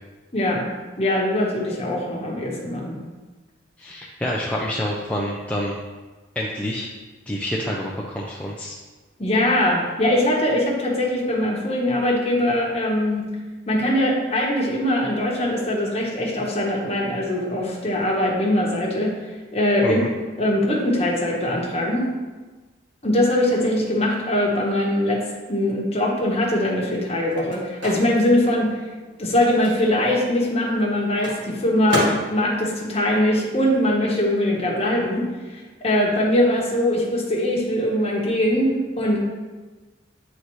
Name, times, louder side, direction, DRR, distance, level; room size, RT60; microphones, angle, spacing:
voice 1, 0.3-0.7 1.0-3.0 9.2-13.4 13.7-19.2 19.5-20.0 20.4-22.1 23.0-28.8 29.2-35.3 35.8-39.2, left 1 dB, 30° left, -2 dB, 1.2 m, -22 dB
voice 2, 3.8-5.8 6.4-6.9 7.3-8.8 19.8-20.1, equal, 5° left, -4 dB, 0.5 m, -27 dB
Microwave oven, 26.9-34.1 34.4-36.3, equal, 75° right, 1.7 m, -33 dB
9.5 x 4.0 x 3.1 m, 1.3 s
head